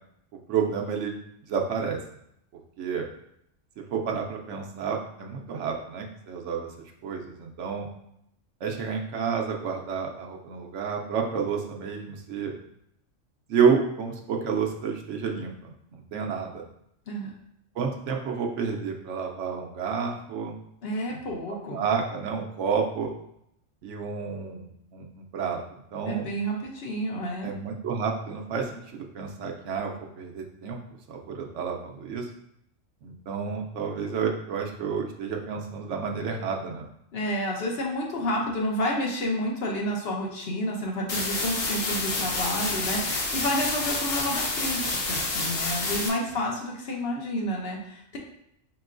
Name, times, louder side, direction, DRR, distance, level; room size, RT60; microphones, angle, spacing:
voice 1, 0.5-1.2 1.5-2.0 2.8-3.1 3.9-6.7 7.0-7.9 8.6-12.6 13.5-16.6 17.8-20.6 21.1-21.2 21.7-23.1 23.8-26.3 27.4-30.8 31.1-32.3 33.0-36.9, right 6 dB, 70° right, 2 dB, 0.9 m, -30 dB
voice 2, 20.8-21.9 26.1-27.5 37.1-48.2, equal, 55° left, 0 dB, 0.9 m, -30 dB
sound 1, 41.1-46.1, left 2 dB, 85° left, 1.2 m, -28 dB
5.4 x 2.9 x 2.4 m, 0.76 s
omnidirectional pair, 1.3 m